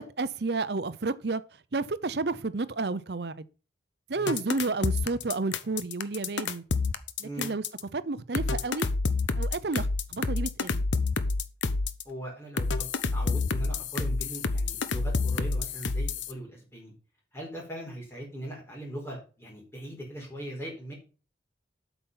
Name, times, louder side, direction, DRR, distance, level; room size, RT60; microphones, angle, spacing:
voice 1, 0.0-1.4 1.7-3.4 4.1-6.6 7.2-7.6 7.9-8.9 9.3-10.8, right 3 dB, 60° right, 0.7 m, -31 dB
sound 1, 4.3-7.8 8.3-12.0 12.6-16.3, left 3 dB, 85° left, 0.9 m, -28 dB
voice 2, 7.2-7.5 12.0-16.9 17.3-20.9, right 1 dB, 15° left, 4.6 m, -40 dB
8.5 x 7.0 x 5.7 m
head